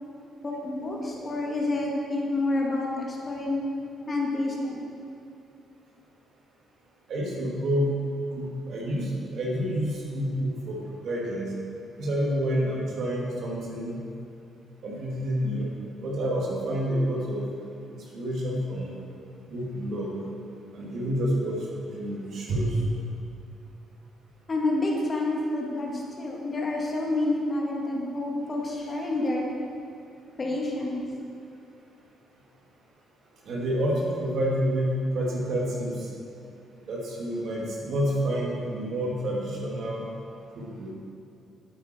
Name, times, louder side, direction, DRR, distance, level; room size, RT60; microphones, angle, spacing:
voice 1, 0.4-3.6 4.1-4.8 24.5-29.4 30.4-31.0, left 2 dB, 35° left, -2 dB, 2.1 m, -28 dB
voice 2, 7.1-7.9 8.4-10.8 11.0-11.5 12.0-14.0 14.8-15.7 16.0-17.4 18.0-18.9 19.5-20.1 20.7-21.6 21.9-22.8 33.5-36.1 36.9-40.0 40.6-40.9, equal, 65° right, -3 dB, 2.6 m, -28 dB
10.5 x 9.1 x 4.6 m, 2.5 s
cardioid pair, 90°, 0 cm